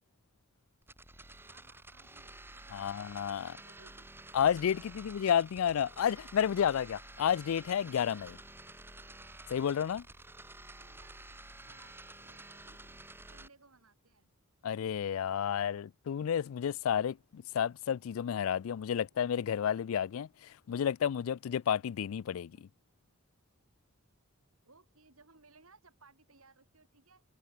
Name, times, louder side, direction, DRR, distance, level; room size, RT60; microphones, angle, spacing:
sound 1, 0.8-13.5, right 2 dB, 10° right, 4.1 m, -51 dB
voice 1, 1.4-3.0 3.6-4.1 4.4-4.7 10.6-14.3 22.3-22.6 24.6-27.2, right 3 dB, 85° right, 5.3 m, -63 dB
voice 2, 2.7-3.6 4.3-8.4 9.5-10.0 14.6-22.7, left 8 dB, 75° left, 0.4 m, -31 dB
head